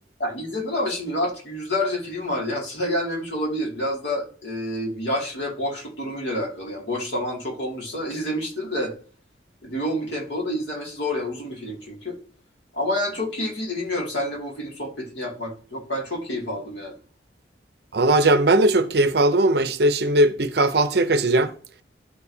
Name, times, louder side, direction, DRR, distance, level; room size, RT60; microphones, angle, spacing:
voice 1, 0.2-8.9 9.6-12.2 12.7-16.9, left 1 dB, 70° left, 2.4 m, -28 dB
voice 2, 17.9-21.5, right 2 dB, 60° right, 0.6 m, -19 dB
12.5 x 4.7 x 2.7 m
head